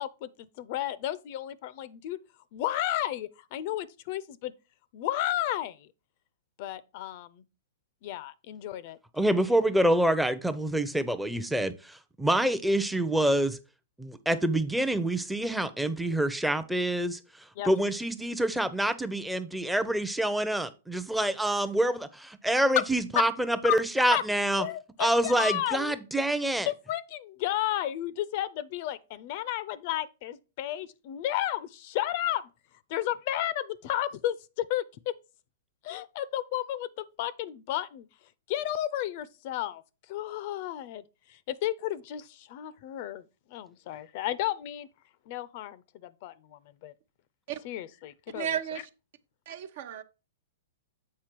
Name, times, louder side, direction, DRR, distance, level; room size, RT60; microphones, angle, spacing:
voice 1, 0.0-2.2 2.5-4.5 4.9-5.9 6.6-7.4 8.0-9.0 17.6-17.7 23.2-23.3 23.6-23.8 24.1-24.2 24.6-26.0 26.4-32.5 32.9-35.1 35.8-38.1 38.5-39.8 40.1-41.0 41.3-43.2 43.5-44.9 45.3-46.9 47.6-48.5, left 13 dB, 50° left, 0.5 m, -32 dB
voice 2, 9.1-13.6 14.0-17.2 17.6-24.7 25.0-26.7, right 1 dB, 5° right, 0.6 m, -26 dB
voice 3, 48.3-48.9 49.5-50.0, right 9 dB, 60° right, 0.7 m, -33 dB
7.5 x 4.5 x 4.5 m
hypercardioid pair, 135°, 0 cm